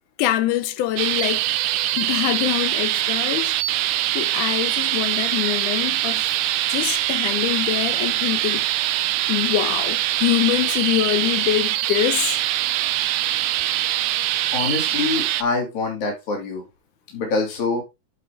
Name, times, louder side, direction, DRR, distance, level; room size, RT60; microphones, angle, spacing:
voice 1, 0.2-1.5 2.0-3.5 4.1-6.3 6.7-8.7 9.3-12.4, left 14 dB, 80° left, 2.1 m, -24 dB
sound 1, 1.0-15.4, right 14 dB, 80° right, 2.0 m, -23 dB
voice 2, 14.5-16.6 17.1-17.8, left 3 dB, 65° left, 3.5 m, -25 dB
8.8 x 5.0 x 3.4 m
omnidirectional pair, 3.7 m